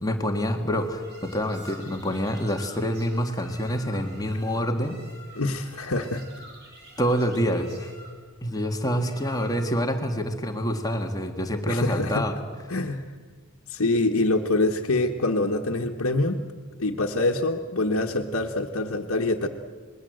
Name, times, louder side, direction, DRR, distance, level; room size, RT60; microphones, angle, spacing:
voice 1, 0.0-5.0 7.0-7.9 8.4-12.4, equal, 15° left, 4 dB, 1.8 m, -26 dB
sound 1, 0.7-9.9, right 1 dB, 50° right, 4.7 m, -48 dB
voice 2, 5.4-6.2 11.7-12.3 12.7-13.0 13.7-16.4 16.8-19.5, left 2 dB, 80° left, -2 dB, 1.4 m, -25 dB
27.0 x 21.0 x 7.9 m, 1.5 s
head